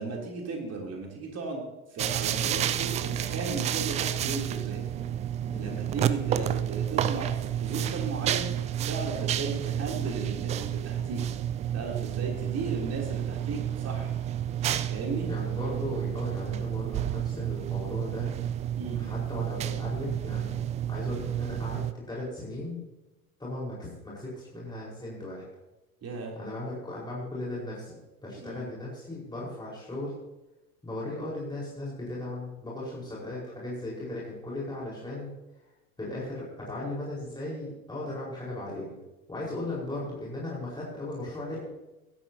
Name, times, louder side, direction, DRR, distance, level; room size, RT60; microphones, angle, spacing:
voice 1, 0.0-1.6 1.9-4.8 5.5-8.5 8.9-11.2 11.7-14.1 14.9-15.3 18.8-19.0 26.0-26.3 28.4-28.6, right 4 dB, 35° right, 0 dB, 3.4 m, -35 dB
sound 1, 2.0-21.9, right 10 dB, 15° right, 0.3 m, -30 dB
voice 2, 15.3-18.3 19.0-20.6 20.9-22.8 23.4-25.5 26.3-27.9 28.2-30.1 30.8-35.3 36.0-38.9 39.3-41.6, left 1 dB, 10° left, -6 dB, 4.9 m, -37 dB
15.5 x 12.5 x 2.9 m, 1.0 s
figure-of-eight pair, 70°, 44 cm